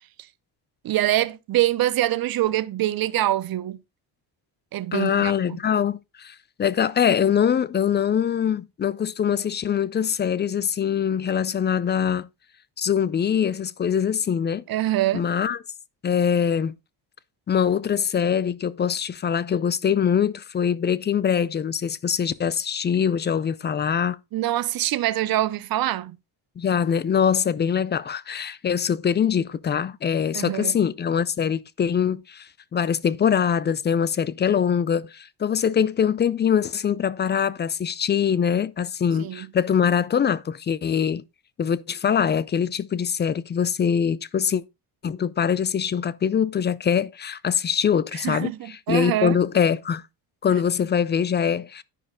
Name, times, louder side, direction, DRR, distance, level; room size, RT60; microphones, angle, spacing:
voice 1, 0.8-3.8 4.7-5.6 14.7-15.3 24.3-26.2 30.3-30.8 39.2-39.5 48.1-49.4, right 14 dB, 55° right, 0.7 m, -24 dB
voice 2, 4.9-12.3 12.8-14.6 15.1-15.6 16.0-16.8 17.5-24.2 26.6-41.2 41.6-44.6 45.0-50.0 50.4-51.8, left 8 dB, 25° left, 0.3 m, -23 dB
10.0 x 5.1 x 3.7 m
cardioid pair, 105°, 43 cm